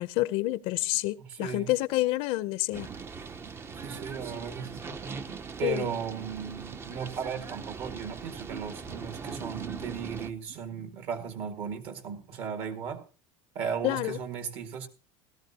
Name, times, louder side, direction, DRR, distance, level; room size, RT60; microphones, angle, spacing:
voice 1, 0.0-2.9 5.6-5.9 13.8-14.2, left 18 dB, 65° left, 0.6 m, -28 dB
voice 2, 1.2-1.7 3.8-4.8 5.2-13.0 13.6-14.9, right 7 dB, 55° right, 1.9 m, -36 dB
sound 1, 2.6-12.3, right 6 dB, 80° right, 2.7 m, -54 dB
sound 2, 2.7-10.3, right 5 dB, 20° right, 0.6 m, -41 dB
17.0 x 13.5 x 2.8 m
cardioid pair, 140°, 11 cm